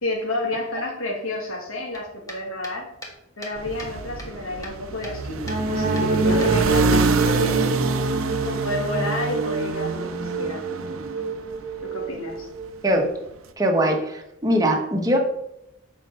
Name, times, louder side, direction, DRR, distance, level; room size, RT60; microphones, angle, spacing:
voice 1, 0.0-2.9 3.4-7.7 8.4-10.6 11.8-12.5, left 1 dB, 80° left, -1 dB, 1.8 m, -30 dB
sound 1, 1.9-3.9 4.2-5.2 5.5-5.6 5.9-6.1 6.4-7.4, equal, 15° left, 1.4 m, -40 dB
sound 2, 3.6-11.9, right 3 dB, 85° right, 0.6 m, -26 dB
sound 3, 5.4-13.1, right 3 dB, 45° right, 1.2 m, -27 dB
voice 2, 13.6-15.2, right 1 dB, 20° right, 1 dB, 1.2 m, -21 dB
7.3 x 4.5 x 5.4 m, 0.83 s
head